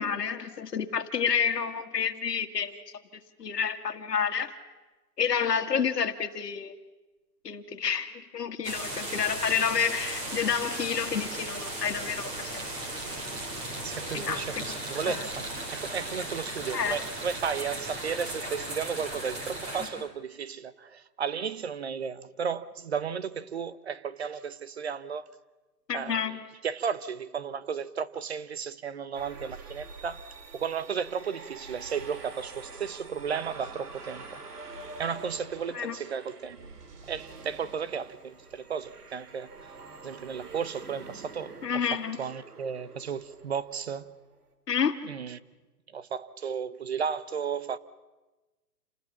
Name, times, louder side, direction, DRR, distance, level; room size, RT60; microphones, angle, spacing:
voice 1, 0.0-2.7 3.4-4.5 5.2-6.7 7.4-12.6 14.1-14.4 15.1-15.2 16.7-17.0 25.9-26.4 35.7-36.0 41.6-42.2 44.7-45.0, left 7 dB, 80° left, 2.0 m, -29 dB
sound 1, 8.6-19.9, right 1 dB, 15° right, 2.7 m, -36 dB
voice 2, 13.8-25.3 25.9-30.2 30.5-34.3 35.0-36.7 37.1-39.5 40.0-44.1 45.0-45.4 45.9-47.8, right 6 dB, 40° right, 0.9 m, -34 dB
sound 2, 29.1-44.4, right 3 dB, 75° right, 3.5 m, -46 dB
28.0 x 20.0 x 7.3 m
hypercardioid pair, 170°, 47 cm